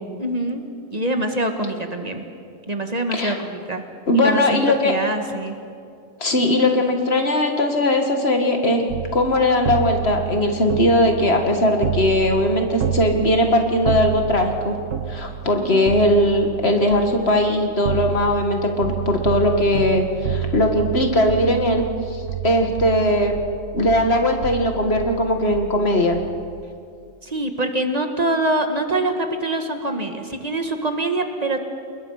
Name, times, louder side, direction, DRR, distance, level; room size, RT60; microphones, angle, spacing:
voice 1, 0.2-0.6 0.9-2.3 2.7-3.8 4.1-5.6 15.6-15.9 27.2-31.6, right 1 dB, 30° right, 5 dB, 1.8 m, -24 dB
voice 2, 4.1-4.9 6.2-8.8 9.1-14.8 15.1-21.8 22.1-23.3 23.7-26.2, left 1 dB, 55° left, 4 dB, 2.1 m, -19 dB
sound 1, 8.9-26.6, right 9 dB, 80° right, 1.4 m, -29 dB
29.5 x 20.5 x 5.7 m, 2.4 s
omnidirectional pair, 1.3 m